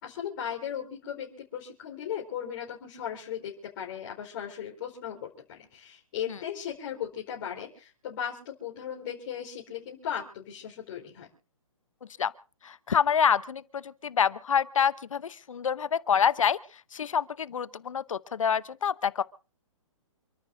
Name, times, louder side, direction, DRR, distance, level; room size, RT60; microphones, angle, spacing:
voice 1, 0.0-11.3, left 9 dB, 40° left, -3 dB, 4.6 m, -37 dB
voice 2, 12.6-16.6 16.9-19.2, left 7 dB, 70° left, 17 dB, 0.9 m, -27 dB
28.5 x 14.0 x 2.7 m, 0.36 s
hypercardioid pair, 145°, 17 cm